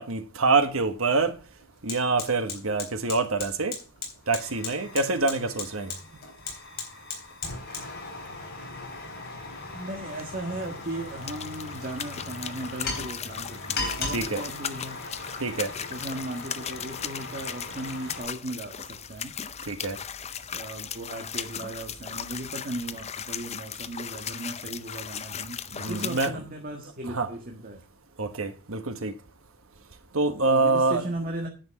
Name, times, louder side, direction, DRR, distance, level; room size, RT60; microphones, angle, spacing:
voice 1, 0.0-1.3 1.8-3.7 4.3-5.9 14.1-14.4 15.4-15.7 19.7-20.0 25.7-26.3 27.1-27.3 28.2-29.1 30.1-31.0, right 3 dB, 80° right, 1.3 m, -25 dB
Fire, 0.8-0.9 1.2-18.2, left 3 dB, 50° left, 3.9 m, -38 dB
voice 2, 9.7-15.0 15.9-19.3 20.5-27.8 30.4-31.5, right 1 dB, 45° right, 1.6 m, -37 dB
sound 1, 10.1-26.3, left 8 dB, 30° left, 0.6 m, -37 dB
10.5 x 6.1 x 5.7 m
head